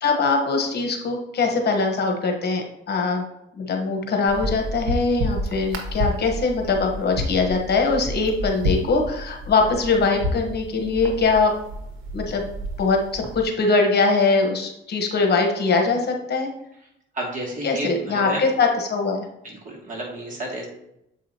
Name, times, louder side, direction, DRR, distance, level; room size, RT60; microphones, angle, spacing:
voice 1, 0.0-3.2 3.6-11.5 12.1-12.4 12.8-16.5 17.6-19.2, left 4 dB, 55° left, 3 dB, 1.2 m, -22 dB
sound 1, 4.3-13.4, equal, 80° right, 1.2 m, -30 dB
voice 2, 17.1-18.4 19.4-20.7, right 1 dB, 40° right, -3 dB, 2.5 m, -31 dB
7.7 x 4.9 x 2.9 m, 0.80 s
cardioid pair, 90°, 20 cm